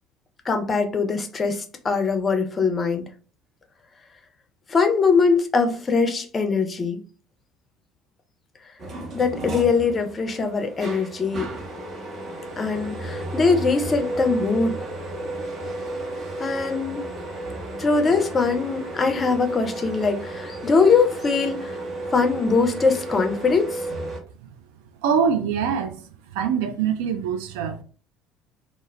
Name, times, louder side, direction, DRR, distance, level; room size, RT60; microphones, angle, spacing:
voice 1, 0.5-3.1 4.7-7.0 9.1-11.5 12.6-14.7 16.4-17.1 17.8-21.7 22.1-23.8, left 4 dB, 25° left, 0.5 m, -22 dB
sound 1, 8.8-24.2, right 1 dB, 45° right, 0.7 m, -33 dB
voice 2, 25.0-27.8, right 7 dB, 65° right, 0.3 m, -24 dB
2.1 x 2.0 x 3.2 m
figure-of-eight pair, 60°, 0 cm